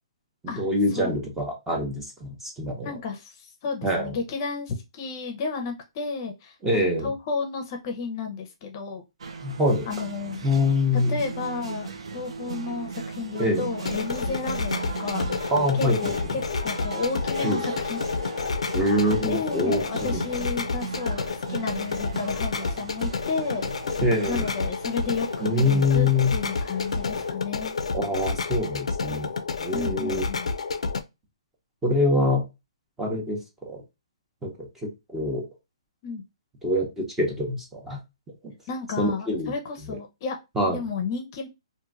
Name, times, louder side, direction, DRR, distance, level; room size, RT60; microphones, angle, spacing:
voice 1, 0.4-2.9 3.8-4.1 6.6-7.1 9.4-9.9 10.4-11.2 13.4-13.7 15.5-16.1 17.4-17.6 18.7-20.2 24.0-24.5 25.4-26.3 27.9-29.3 29.6-30.3 31.8-32.5 33.0-33.8 34.4-34.5 34.8-35.4 36.6-38.0 39.0-39.5 40.6-40.8, left 1 dB, 10° right, 0 dB, 0.7 m, -25 dB
voice 2, 2.8-9.0 9.9-10.5 11.1-15.5 15.8-18.0 19.2-23.6 24.3-27.7 29.7-30.5 36.0-36.2 38.7-40.4 40.7-41.5, left 4 dB, 35° left, 4 dB, 0.6 m, -32 dB
sound 1, 9.2-27.3, right 5 dB, 75° right, 0.6 m, -38 dB
sound 2, 13.8-31.0, left 4 dB, 85° left, 0.4 m, -30 dB
2.9 x 2.5 x 2.4 m, 0.24 s
hypercardioid pair, 155°, 3 cm